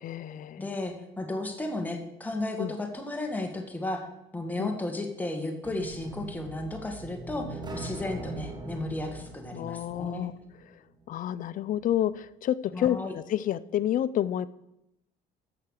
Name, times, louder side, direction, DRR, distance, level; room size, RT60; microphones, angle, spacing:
voice 1, 0.0-0.7 2.6-2.7 4.6-4.8 9.5-10.3 11.1-14.5, left 11 dB, 50° left, 16 dB, 0.5 m, -29 dB
voice 2, 0.6-4.1 4.3-10.3 12.7-13.1, left 2 dB, 10° left, 3 dB, 1.8 m, -34 dB
sound 1, 5.6-10.6, right 3 dB, 25° right, 2.4 m, -41 dB
14.5 x 5.8 x 6.5 m, 0.86 s
cardioid pair, 110°, 17 cm